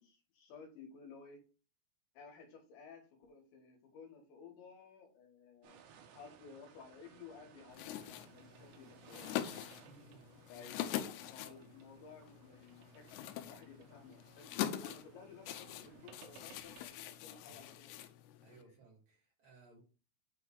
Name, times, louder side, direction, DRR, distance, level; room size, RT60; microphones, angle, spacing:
voice 1, 0.0-1.4 2.2-5.8 6.1-9.3 10.5-14.5 14.8-18.0 18.6-18.7, left 5 dB, 70° left, 3.8 m, -55 dB
PIrate Ship at Bay w.out Seagulls, 5.6-16.9, right 7 dB, 85° right, 3.9 m, -61 dB
sound 1, 7.7-18.6, left 11 dB, 90° left, 3.3 m, -44 dB
voice 2, 9.8-10.3 10.6-10.8 17.4-17.6 18.4-19.8, right 4 dB, 35° right, 2.5 m, -61 dB
9.4 x 3.5 x 4.7 m
omnidirectional pair, 5.7 m